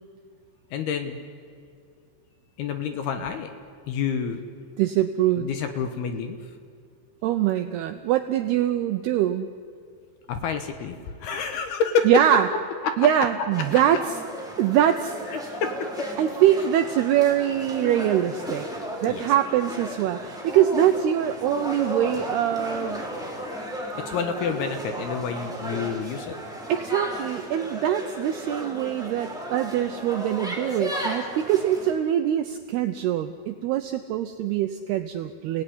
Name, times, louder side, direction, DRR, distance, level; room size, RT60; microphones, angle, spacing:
voice 1, 0.7-1.2 2.6-3.5 3.9-4.4 5.4-6.4 10.3-12.1 12.8-13.0 15.3-16.1 19.1-19.3 24.0-26.4, left 6 dB, 70° left, 7 dB, 2.8 m, -28 dB
voice 2, 4.8-5.5 7.2-9.5 12.1-12.5 13.0-14.0 14.6-15.2 16.2-18.7 19.0-23.0 26.7-35.6, right 11 dB, 80° right, 8 dB, 2.3 m, -23 dB
sound 1, 13.5-31.9, equal, ahead, 3.0 m, -34 dB
29.5 x 17.5 x 9.9 m, 2.2 s
omnidirectional pair, 5.5 m